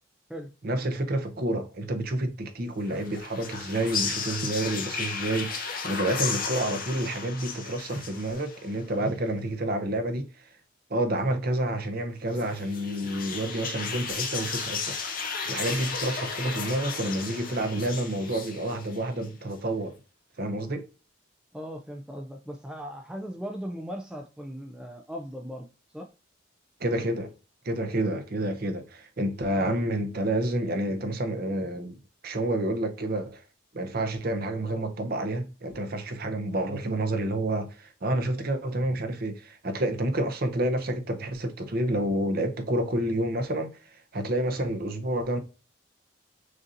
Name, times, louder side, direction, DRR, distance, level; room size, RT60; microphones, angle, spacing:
voice 1, 0.6-10.5 10.9-15.0 15.2-19.9 20.4-20.9 26.8-27.3 27.6-32.0 32.2-33.4 33.7-45.4, right 1 dB, 50° right, 0.7 m, -29 dB
sound 1, 2.8-8.8 12.3-19.3, left 5 dB, 45° left, 1.0 m, -34 dB
voice 2, 21.5-25.7 25.9-26.1 36.7-36.8, equal, 5° right, 0.4 m, -38 dB
6.3 x 2.7 x 2.5 m
head